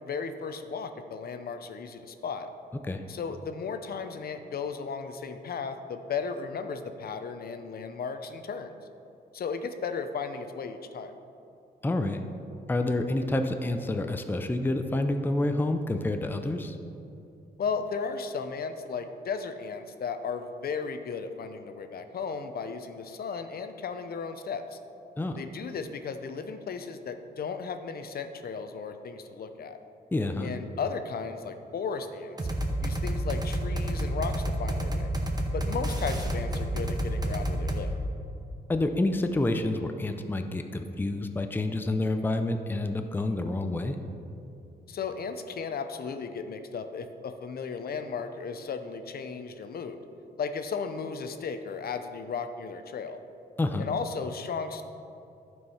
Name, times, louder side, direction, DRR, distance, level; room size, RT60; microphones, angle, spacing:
voice 1, 0.0-2.5 3.1-8.7 9.3-11.1 17.6-24.8 25.4-29.8 30.4-32.4 32.8-35.1 35.5-37.9 44.9-50.0 50.4-53.2 53.8-54.8, left 5 dB, 65° left, 8 dB, 0.6 m, -35 dB
voice 2, 11.8-12.2 12.7-16.8 25.2-25.4 30.1-30.5 38.7-44.0 53.6-53.9, left 2 dB, 10° left, 6 dB, 0.5 m, -28 dB
sound 1, 32.4-37.9, right 1 dB, 25° right, 1.0 m, -29 dB
11.5 x 4.7 x 5.5 m, 2.7 s
wide cardioid pair, 115°, 17 cm